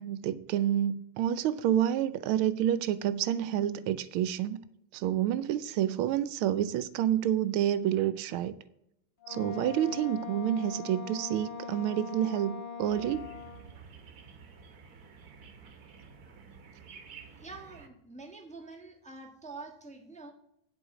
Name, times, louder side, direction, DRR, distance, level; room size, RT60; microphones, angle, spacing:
voice 1, 0.0-4.6 4.9-8.6 9.3-13.3, right 11 dB, 80° right, 1.4 m, -29 dB
Wind instrument woodwind instrument, 9.2-13.7, left 6 dB, 75° left, 0.4 m, -41 dB
sound 1, 12.9-17.9, right 5 dB, 50° right, 1.4 m, -51 dB
voice 2, 17.3-20.3, right 3 dB, 5° left, 1.1 m, -46 dB
8.7 x 8.1 x 4.8 m
omnidirectional pair, 2.3 m